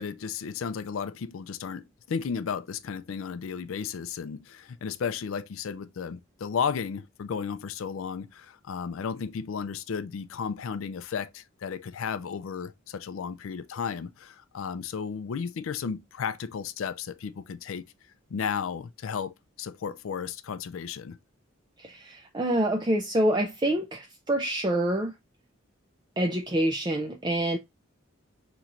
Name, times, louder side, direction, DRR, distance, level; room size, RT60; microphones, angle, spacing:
voice 1, 0.0-17.8 18.3-21.2, left 6 dB, 80° left, 0.4 m, -34 dB
voice 2, 21.8-25.1 26.2-27.6, right 1 dB, 20° right, 0.4 m, -26 dB
5.6 x 3.0 x 2.5 m
head